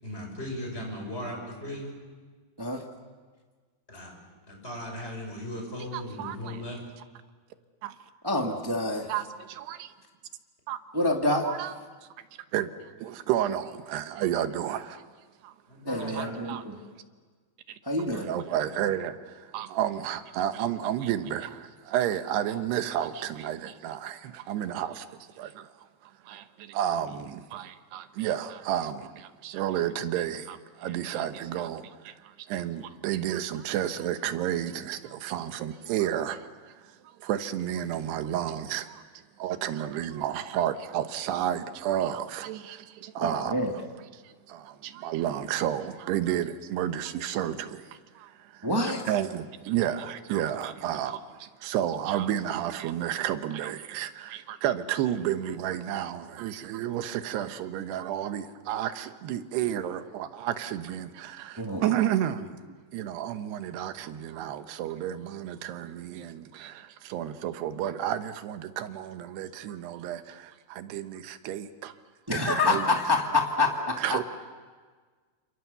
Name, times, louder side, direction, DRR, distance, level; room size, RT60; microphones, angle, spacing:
voice 1, 0.0-1.9 3.9-4.2 4.5-6.8 15.7-16.3, left 1 dB, 15° left, 6.4 m, -37 dB
voice 2, 5.9-6.6 7.8-8.0 9.1-9.9 10.7-10.8 11.4-11.7 12.5-12.7 13.0-15.0 15.4-15.5 16.1-16.6 17.7-17.8 18.1-25.1 25.4-25.7 26.2-39.0 39.4-43.6 44.1-48.7 49.0-62.6 62.9-71.9 72.3-72.9 74.0-74.2, right 11 dB, 85° right, 3.2 m, -31 dB
voice 3, 8.2-9.1 10.9-11.5 15.8-16.8 17.8-18.3 43.2-43.7 48.6-49.0 61.6-61.9 72.3-74.2, left 2 dB, 35° right, 0.3 m, -27 dB
28.5 x 28.5 x 6.9 m
omnidirectional pair, 4.6 m